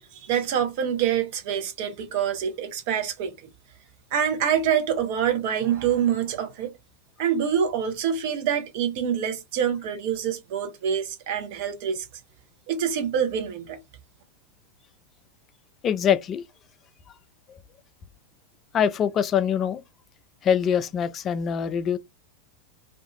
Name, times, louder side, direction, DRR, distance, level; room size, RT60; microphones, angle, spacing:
voice 1, 0.0-3.3 4.1-6.7 7.2-12.0 12.7-13.8, right 8 dB, 50° right, 0.7 m, -26 dB
voice 2, 15.8-16.4 18.7-19.8 20.4-22.0, left 8 dB, 30° left, 0.3 m, -23 dB
2.5 x 2.4 x 2.7 m
figure-of-eight pair, 90°, 0 cm